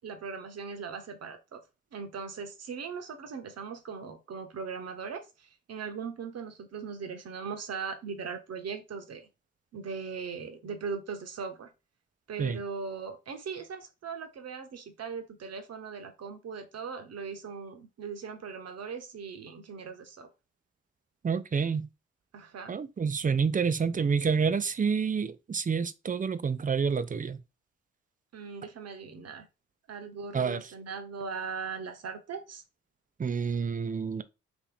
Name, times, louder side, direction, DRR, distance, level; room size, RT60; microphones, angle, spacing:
voice 1, 0.0-1.6 1.9-9.3 9.7-11.7 12.3-20.3 22.3-22.8 28.3-29.5 29.9-32.6, right 5 dB, 55° right, 1.0 m, -39 dB
voice 2, 21.2-21.9 22.7-27.4 30.3-30.6 33.2-34.2, right 6 dB, 25° right, 0.5 m, -28 dB
3.0 x 3.0 x 3.9 m
hypercardioid pair, 45°, 31 cm